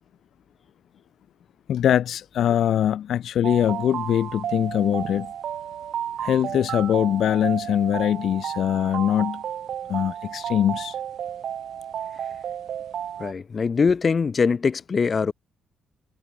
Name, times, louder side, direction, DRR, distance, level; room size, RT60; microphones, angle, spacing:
voice 1, 1.7-5.3 6.2-9.4 9.9-11.0, left 10 dB, 70° left, 0.9 m, -22 dB
sound 1, 3.4-13.3, right 9 dB, 65° right, 4.6 m, -32 dB
voice 2, 13.2-15.3, left 5 dB, 40° left, 1.5 m, -22 dB
cardioid pair, 90°, 0 cm